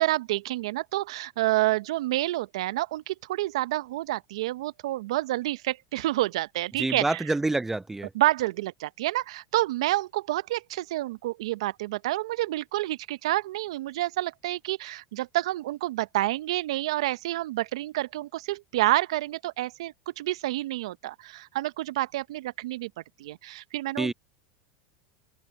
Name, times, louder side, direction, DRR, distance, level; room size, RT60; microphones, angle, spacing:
voice 1, 0.0-7.2 8.1-22.9 23.2-24.1, right 16 dB, 75° right, 0.7 m, -28 dB
voice 2, 6.8-8.1 24.0-24.1, right 2 dB, 10° right, 0.8 m, -27 dB
hypercardioid pair, 95°, 3 cm